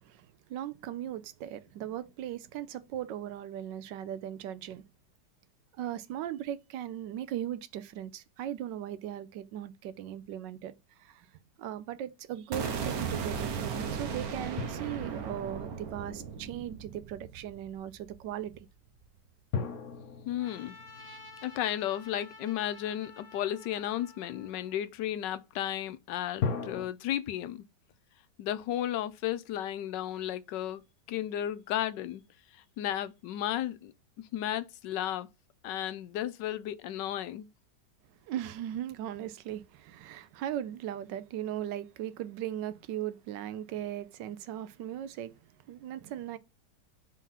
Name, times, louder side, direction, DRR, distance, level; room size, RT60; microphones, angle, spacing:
voice 1, 0.0-4.8 5.7-18.7 38.2-45.3 45.7-46.4, right 11 dB, 90° right, 1.3 m, -38 dB
sound 1, 12.5-18.6, right 6 dB, 65° right, 1.2 m, -36 dB
sound 2, 14.6-16.5 19.5-22.8 26.4-26.9, left 6 dB, 60° left, 1.1 m, -38 dB
voice 2, 20.2-27.6 28.4-30.8 31.1-32.2 32.5-33.9 34.3-35.3 35.6-37.5, left 11 dB, 80° left, 1.3 m, -34 dB
Trumpet, 20.4-24.8, left 3 dB, 5° right, 1.3 m, -51 dB
4.5 x 3.8 x 5.6 m
omnidirectional pair, 1.9 m